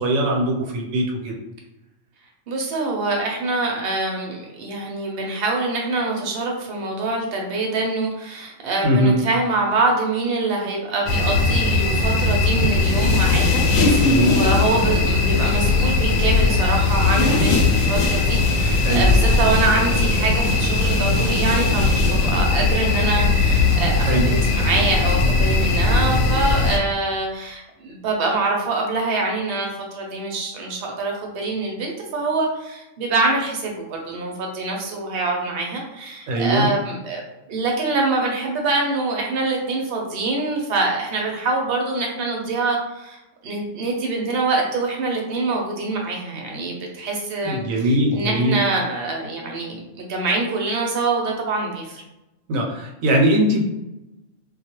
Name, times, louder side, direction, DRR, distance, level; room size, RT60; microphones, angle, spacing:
voice 1, 0.0-1.4 8.8-9.2 14.0-14.4 18.8-19.1 24.0-24.3 36.3-36.7 47.4-48.6 52.5-53.7, equal, 80° right, 0 dB, 1.0 m, -20 dB
voice 2, 2.5-37.2 37.5-52.0, right 3 dB, 60° right, 0 dB, 0.7 m, -25 dB
sound 1, 11.1-26.8, left 3 dB, 80° left, 1.0 m, -19 dB
2.3 x 2.2 x 2.8 m, 0.93 s
omnidirectional pair, 1.4 m